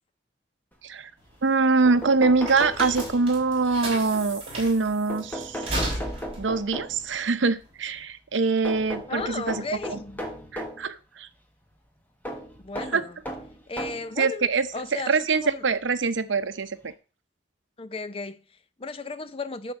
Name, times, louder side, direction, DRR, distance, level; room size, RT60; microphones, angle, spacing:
sound 1, 1.2-8.0, right 1 dB, 30° right, 4.3 m, -35 dB
voice 1, 1.4-5.8 6.4-9.6 9.9-10.0 10.5-11.3 12.9-13.0 14.2-14.7 14.9-16.9, right 4 dB, 80° right, 0.7 m, -24 dB
sound 2, 1.5-1.6 1.8-3.6 5.1-7.2 8.6-10.9 12.2-14.1 15.0-15.1 16.4-16.5 16.8-16.9, equal, 10° left, 1.3 m, -36 dB
voice 2, 9.1-10.2 12.6-13.2 13.7-15.6 17.8-19.7, left 3 dB, 30° left, 0.5 m, -35 dB
10.0 x 4.2 x 7.0 m
head